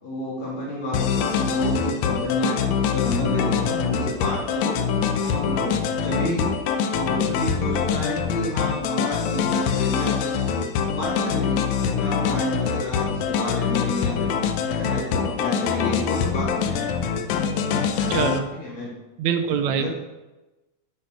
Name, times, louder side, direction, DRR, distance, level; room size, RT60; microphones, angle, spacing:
voice 1, 0.0-4.8 5.2-6.5 6.9-10.3 10.9-14.3 14.7-16.9 17.7-19.0 19.5-19.9, left 1 dB, 65° left, -5 dB, 3.9 m, -30 dB
sound 1, 0.9-18.4, left 6 dB, 85° left, 2.3 m, -24 dB
voice 2, 18.1-18.5 19.2-19.9, right 7 dB, 75° right, 8 dB, 2.2 m, -23 dB
10.0 x 8.9 x 6.5 m, 1.1 s
omnidirectional pair, 3.4 m